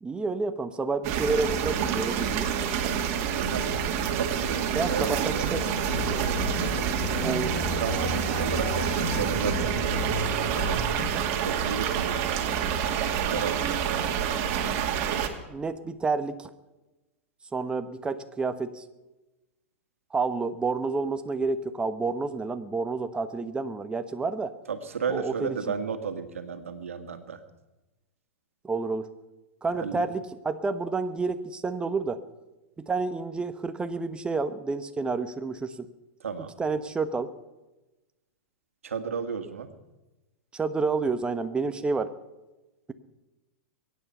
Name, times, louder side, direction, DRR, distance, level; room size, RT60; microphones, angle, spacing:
voice 1, 0.0-2.5 4.7-5.7 7.2-7.5 15.5-16.5 17.5-18.8 20.1-24.5 25.1-25.6 28.6-29.1 29.6-32.2 32.8-35.9 36.6-37.3 40.5-42.1, right 4 dB, 15° right, 10 dB, 1.1 m, -29 dB
sound 1, 1.0-15.3, right 8 dB, 45° right, 2.2 m, -28 dB
voice 2, 3.3-5.9 6.3-6.5 7.5-12.7 13.1-14.2 24.7-27.4 29.7-30.0 36.2-36.5 38.8-39.7, right 6 dB, 85° right, 8 dB, 1.8 m, -34 dB
sound 2, 5.6-11.0, left 3 dB, 65° left, 6.8 m, -34 dB
23.0 x 9.5 x 5.6 m, 1.1 s
hypercardioid pair, 105°, 7 cm